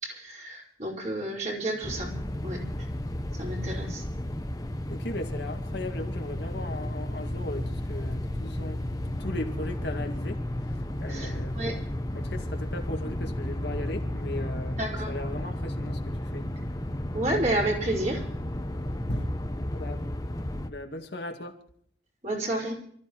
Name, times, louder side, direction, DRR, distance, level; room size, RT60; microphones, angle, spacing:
voice 1, 0.0-2.1 2.4-2.6 3.3-4.0 11.1-11.7 14.8-15.1 17.1-18.2 22.2-22.8, right 1 dB, 40° right, 5.1 m, -30 dB
sound 1, 1.8-20.7, left 1 dB, 20° left, 1.0 m, -33 dB
voice 2, 4.9-11.8 12.1-16.5 19.1-19.4 19.7-20.1 20.7-21.6, left 1 dB, 60° left, 2.1 m, -37 dB
29.0 x 14.0 x 3.1 m
head